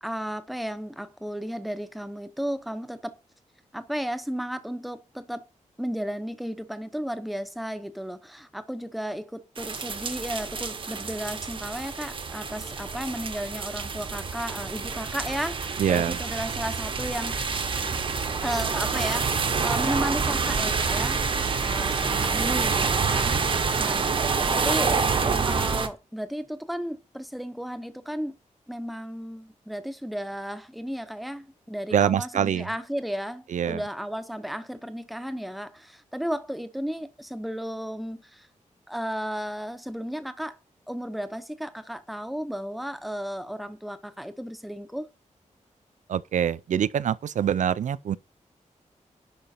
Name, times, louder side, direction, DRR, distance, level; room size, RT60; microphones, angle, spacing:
voice 1, 0.0-3.2 3.7-5.4 5.8-17.3 18.4-19.3 19.6-23.4 23.8-24.1 24.5-25.0 25.2-28.4 28.7-38.5 38.9-40.6 40.9-45.1, equal, ahead, 0.7 m, -34 dB
sound 1, 9.6-25.9, right 5 dB, 40° right, 0.9 m, -27 dB
voice 2, 15.8-16.2 31.9-32.7 33.5-33.8 46.1-48.2, right 9 dB, 70° right, 0.4 m, -24 dB
10.5 x 5.1 x 4.3 m
wide cardioid pair, 180°, 13 cm